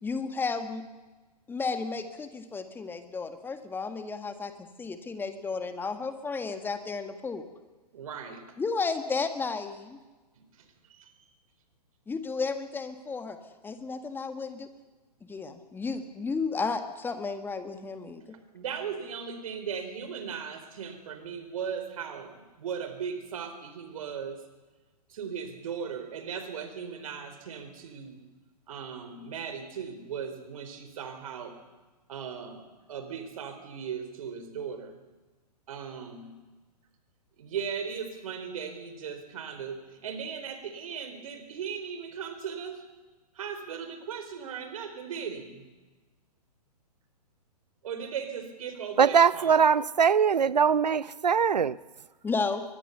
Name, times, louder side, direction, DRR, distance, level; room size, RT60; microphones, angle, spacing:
voice 1, 0.0-0.8 1.5-7.5 8.6-10.0 12.1-13.4 13.6-14.7 15.2-18.4 52.2-52.6, left 4 dB, 10° left, 1.7 m, -33 dB
voice 2, 7.9-8.4 10.6-11.1 18.5-24.4 25.1-28.2 28.7-31.6 32.1-34.9 35.7-36.4 37.4-42.8 43.4-45.6 47.8-49.7, right 7 dB, 55° right, 4.2 m, -37 dB
voice 3, 49.0-51.7, right 7 dB, 80° right, 0.8 m, -22 dB
23.0 x 21.0 x 7.0 m
figure-of-eight pair, 120°, 21 cm